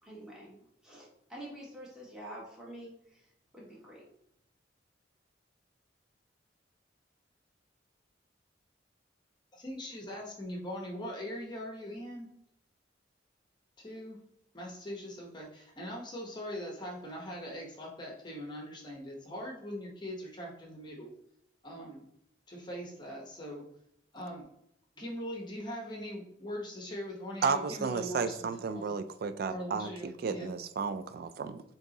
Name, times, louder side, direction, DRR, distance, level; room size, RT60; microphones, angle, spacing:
voice 1, 0.0-3.3 3.5-4.1, right 1 dB, 5° right, -5 dB, 1.3 m, -47 dB
voice 2, 9.5-12.3 13.8-14.2 14.5-21.1 21.6-22.0 22.5-23.6 24.1-24.5 25.0-28.9 29.5-30.5, equal, 25° left, -1 dB, 0.8 m, -41 dB
voice 3, 27.4-31.6, right 5 dB, 55° right, 11 dB, 0.3 m, -33 dB
4.5 x 2.8 x 3.8 m, 0.75 s
head